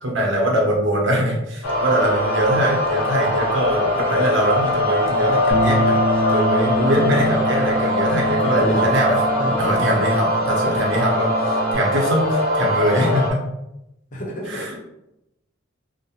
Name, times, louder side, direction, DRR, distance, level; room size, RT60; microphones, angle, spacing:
voice 1, 0.0-6.0 6.3-9.2 9.6-13.4 14.4-14.8, equal, 65° right, -1 dB, 0.8 m, -22 dB
sound 1, 1.6-13.3, left 1 dB, 85° left, 0.6 m, -22 dB
Bass guitar, 5.5-11.8, right 1 dB, 35° right, 0.5 m, -26 dB
voice 2, 8.5-8.9 9.4-9.9 14.1-14.6, equal, 40° left, -2 dB, 0.7 m, -26 dB
2.5 x 2.1 x 2.8 m, 0.86 s
head